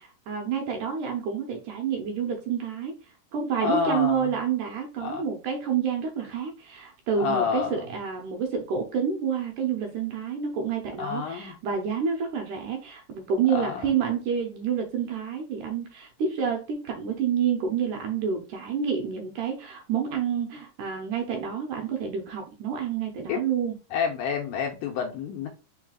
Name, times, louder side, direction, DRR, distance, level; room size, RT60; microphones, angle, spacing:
voice 1, 0.0-2.9 3.3-23.8, right 7 dB, 75° right, 2.0 m, -28 dB
voice 2, 3.6-4.3 5.0-5.2 7.2-7.9 11.0-11.5 13.5-13.9 23.3-23.4 23.9-25.5, left 6 dB, 80° left, 2.1 m, -28 dB
4.7 x 4.5 x 2.4 m
omnidirectional pair, 4.1 m